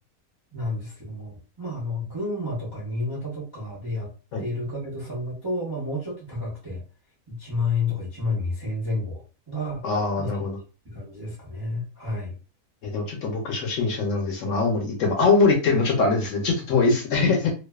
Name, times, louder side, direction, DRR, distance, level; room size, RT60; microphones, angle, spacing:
voice 1, 0.5-4.1 4.4-6.8 7.3-9.8 10.2-10.6 10.9-12.3, left 2 dB, 35° right, -5 dB, 0.3 m, -30 dB
voice 2, 9.8-10.6 12.8-17.5, left 3 dB, 65° left, 1 dB, 0.8 m, -22 dB
2.5 x 2.2 x 2.2 m, 0.33 s
omnidirectional pair, 1.6 m